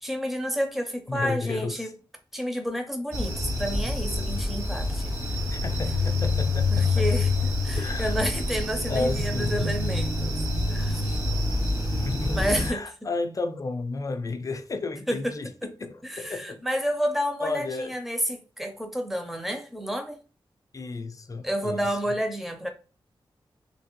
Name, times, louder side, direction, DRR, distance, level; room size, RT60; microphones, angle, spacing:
voice 1, 0.0-2.0 2.3-5.1 6.7-10.3 10.7-11.2 12.3-12.8 15.1-15.3 15.6-15.7 16.0-20.2 21.4-22.7, equal, 5° right, 0.6 m, -30 dB
voice 2, 1.1-1.9 5.5-7.1 7.7-8.1 8.9-9.6 11.9-16.6 17.4-17.9 20.7-22.0, left 3 dB, 40° left, 0.4 m, -32 dB
sound 1, 3.1-12.7, left 2 dB, 35° right, 1.2 m, -26 dB
3.3 x 2.7 x 3.0 m
wide cardioid pair, 115°, 9 cm